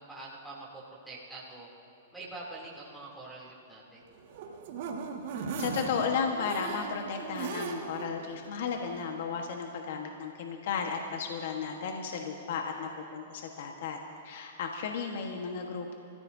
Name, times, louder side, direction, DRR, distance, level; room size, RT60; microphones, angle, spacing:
voice 1, 0.0-1.7 2.1-4.1, right 2 dB, 5° right, -7 dB, 3.0 m, -45 dB
sound 1, 4.1-8.1 8.5-8.6 8.9-9.0, right 5 dB, 55° right, 1.9 m, -37 dB
voice 2, 5.6-14.0 14.2-16.0, left 6 dB, 65° left, 3 dB, 1.4 m, -34 dB
27.5 x 15.0 x 2.8 m, 2.9 s
hypercardioid pair, 140°, 0 cm